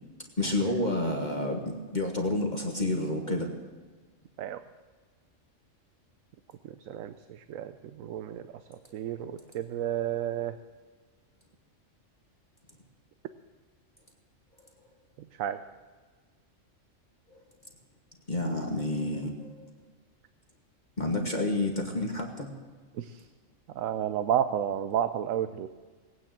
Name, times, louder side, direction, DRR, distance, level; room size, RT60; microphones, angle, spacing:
voice 1, 0.4-3.5 17.3-17.4 18.3-19.6 21.0-22.5, left 2 dB, 35° left, 1 dB, 1.6 m, -29 dB
voice 2, 6.9-8.4 8.7-10.5 15.4-15.6 23.0-23.2 23.7-25.7, right 10 dB, 85° right, 11 dB, 1.1 m, -31 dB
19.0 x 9.4 x 7.5 m, 1.4 s
omnidirectional pair, 1.4 m